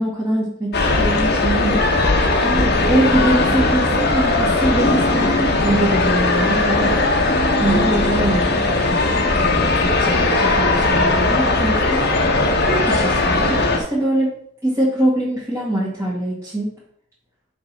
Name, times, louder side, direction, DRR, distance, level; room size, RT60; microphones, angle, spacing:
voice 1, 0.0-1.8 2.4-6.9 7.6-12.1 12.7-16.7, right 1 dB, 15° right, -9 dB, 2.1 m, -23 dB
sound 1, 0.7-13.8, left 2 dB, 55° left, 1.3 m, -18 dB
sound 2, 2.2-10.9, left 2 dB, 25° left, 1.4 m, -29 dB
6.5 x 4.6 x 5.4 m, 0.66 s
head